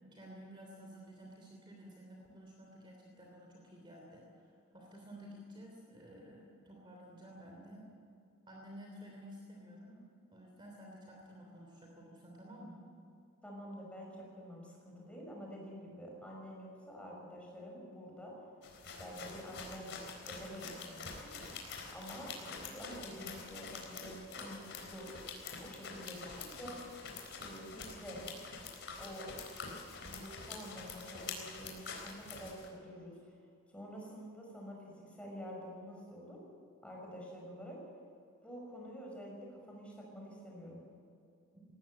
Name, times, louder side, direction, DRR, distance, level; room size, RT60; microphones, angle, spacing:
voice 1, 0.0-7.9 8.5-10.0 10.3-12.8, equal, 25° right, 0 dB, 3.1 m, -52 dB
voice 2, 13.4-18.3 19.0-20.0 20.2-21.3 21.9-25.1 25.6-26.8 27.4-28.2 29.0-29.4 30.0-33.4 33.7-36.4 36.8-37.8 38.4-40.8, equal, 5° left, -2 dB, 5.9 m, -48 dB
sound 1, 18.6-32.7, left 4 dB, 60° left, 4.1 m, -46 dB
20.5 x 17.5 x 7.8 m, 2.5 s
head